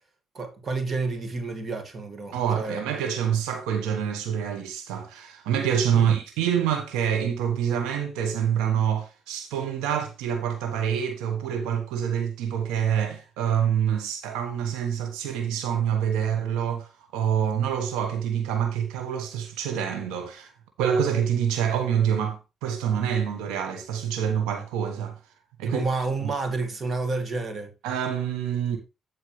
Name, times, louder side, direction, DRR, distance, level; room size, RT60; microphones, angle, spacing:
voice 1, 0.3-2.8 5.9-6.1 25.6-27.7, right 3 dB, 45° right, 2.1 m, -30 dB
voice 2, 2.3-16.9 17.1-20.5 20.8-25.2 25.6-25.8 26.2-26.3 27.8-28.8, right 8 dB, 90° right, 1.4 m, -26 dB
14.0 x 4.7 x 3.2 m
supercardioid pair, 70°, 0 cm